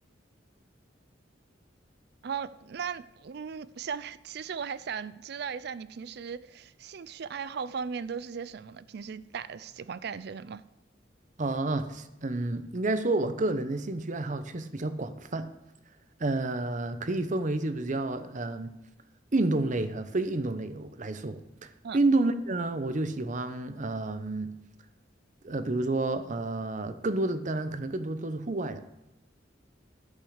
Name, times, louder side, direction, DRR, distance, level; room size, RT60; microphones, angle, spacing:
voice 1, 2.2-10.6 21.8-22.0, right 6 dB, 60° right, 0.4 m, -37 dB
voice 2, 11.4-15.5 16.2-18.7 19.3-21.4 21.9-24.5 25.4-28.8, right 2 dB, 45° right, 0.8 m, -30 dB
12.0 x 5.4 x 6.5 m
head